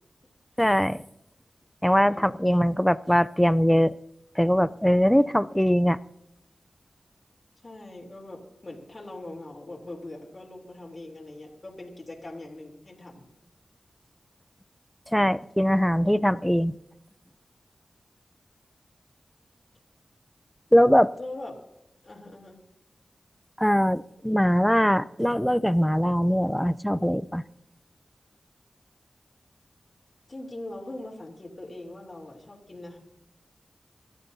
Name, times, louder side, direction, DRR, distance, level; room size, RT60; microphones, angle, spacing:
voice 1, 0.6-1.0 1.8-3.9 4.4-6.0 15.1-16.7 20.7-21.1 23.6-27.4, equal, 5° left, 15 dB, 0.6 m, -21 dB
voice 2, 2.1-2.4 7.6-13.3 21.2-21.6 22.0-22.6 30.3-33.0, left 2 dB, 50° left, -2 dB, 3.3 m, -41 dB
26.5 x 13.0 x 2.8 m, 0.83 s
cardioid pair, 40°, 0 cm